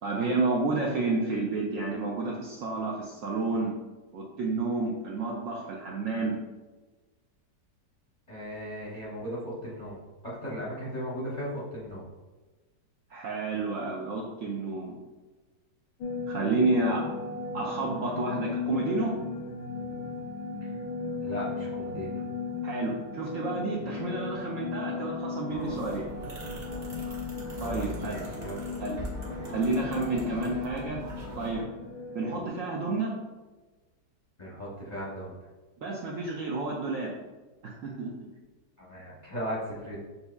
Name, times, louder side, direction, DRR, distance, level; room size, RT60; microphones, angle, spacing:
voice 1, 0.0-3.7 4.1-6.4 13.1-15.0 16.3-17.0 17.5-19.1 22.6-26.1 27.6-28.2 28.8-29.0 29.5-31.0 31.4-31.7 32.1-33.1 35.8-37.1 37.6-38.1, right 3 dB, 70° right, -3 dB, 0.7 m, -30 dB
voice 2, 8.3-12.0 20.6-20.7 21.2-22.1 27.4-28.5 29.2-29.5 34.4-35.4 38.8-40.0, equal, 35° left, -6 dB, 0.6 m, -37 dB
sound 1, 16.0-32.5, left 4 dB, 80° left, 1.2 m, -36 dB
sound 2, 25.5-31.6, equal, 35° right, 0.7 m, -41 dB
6.9 x 2.7 x 2.3 m, 1.2 s
omnidirectional pair, 1.9 m